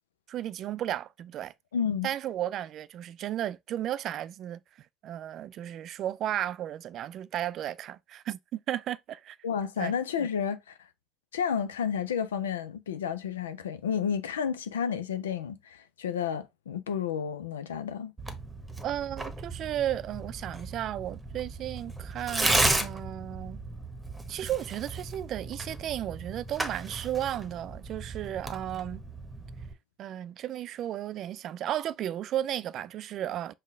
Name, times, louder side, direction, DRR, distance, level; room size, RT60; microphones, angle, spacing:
voice 1, 0.3-1.5 2.0-4.6 5.0-9.4 9.8-9.9 18.8-23.6 24.3-29.0 30.0-33.5, right 11 dB, 55° right, 0.3 m, -34 dB
voice 2, 1.7-2.1 9.4-10.7 11.3-18.1, left 7 dB, 85° left, 0.4 m, -31 dB
Tearing, 18.2-29.7, right 2 dB, 15° right, 1.0 m, -34 dB
5.4 x 2.1 x 3.6 m
hypercardioid pair, 65°, 0 cm